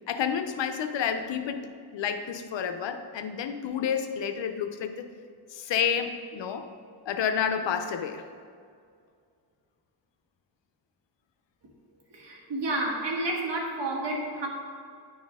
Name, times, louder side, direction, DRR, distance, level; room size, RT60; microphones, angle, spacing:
voice 1, 0.1-5.1 5.5-6.7 7.1-8.2, left 7 dB, 75° left, 8 dB, 0.7 m, -30 dB
voice 2, 12.1-14.5, right 2 dB, 65° right, -1 dB, 1.6 m, -30 dB
10.0 x 4.3 x 3.5 m, 2.2 s
cardioid pair, 90°, 45 cm